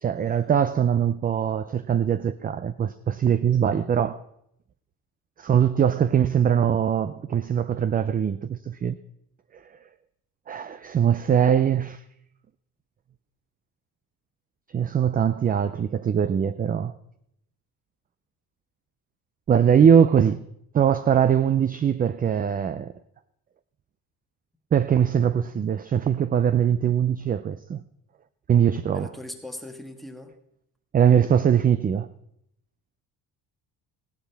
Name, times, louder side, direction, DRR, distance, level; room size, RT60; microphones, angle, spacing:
voice 1, 0.0-4.2 5.4-9.0 10.5-12.0 14.7-16.9 19.5-20.4 20.7-22.9 24.7-27.8 28.5-29.1 30.9-32.1, right 8 dB, 25° right, 0.3 m, -21 dB
voice 2, 28.9-30.3, left 1 dB, ahead, 1.4 m, -39 dB
16.0 x 11.5 x 3.4 m
cardioid pair, 110°, 39 cm